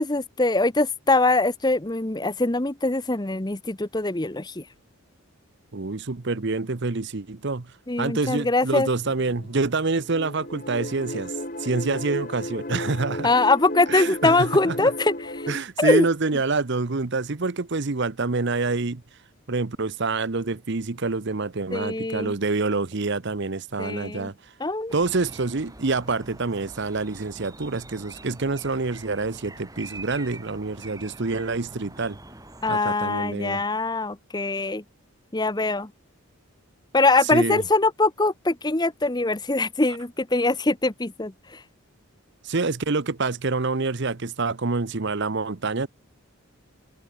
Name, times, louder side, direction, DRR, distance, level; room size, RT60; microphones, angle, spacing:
voice 1, 0.0-4.6 7.9-8.9 13.2-15.5 15.8-16.1 21.7-22.3 23.8-24.3 24.6-24.9 32.6-34.8 35.3-35.9 36.9-41.6, left 2 dB, 20° left, 0.9 m, -23 dB
voice 2, 5.7-7.7 8.0-11.3 11.6-13.3 13.9-14.9 15.5-19.0 19.5-24.3 24.9-32.2 32.7-33.6 37.3-37.6 42.4-45.9, right 3 dB, 50° right, 0.8 m, -27 dB
sound 1, 9.0-15.6, left 1 dB, 40° left, 4.9 m, -34 dB
sound 2, 24.9-32.7, right 2 dB, 15° right, 8.0 m, -44 dB
head